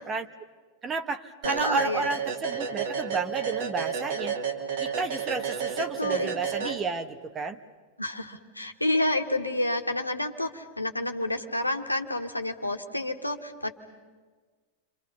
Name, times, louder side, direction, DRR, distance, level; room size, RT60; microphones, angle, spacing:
voice 1, 0.8-4.4 4.8-7.6, right 4 dB, 20° right, 8 dB, 1.1 m, -31 dB
voice 2, 1.4-2.1 6.0-6.3 6.6-6.8 8.0-13.7, left 1 dB, 85° left, 5 dB, 1.7 m, -29 dB
sound 1, 1.4-7.2, right 6 dB, 60° right, 2.7 m, -32 dB
29.5 x 26.0 x 5.6 m, 1.4 s
figure-of-eight pair, 90°, 0 cm